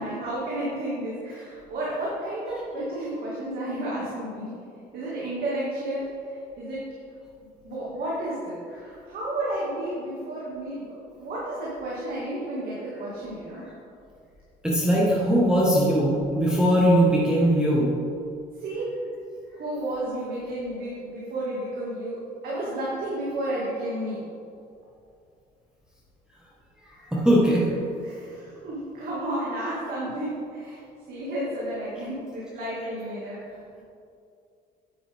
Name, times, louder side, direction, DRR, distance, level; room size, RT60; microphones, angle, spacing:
voice 1, 0.0-4.5 4.9-6.8 7.6-13.6 18.6-18.9 19.5-24.2 28.0-30.8 31.1-33.6, right 1 dB, 65° right, -7 dB, 2.3 m, -32 dB
voice 2, 14.6-17.9 27.1-27.7, equal, 5° right, -6 dB, 1.6 m, -20 dB
9.3 x 9.0 x 3.6 m, 2.4 s
cardioid pair, 110°, 17 cm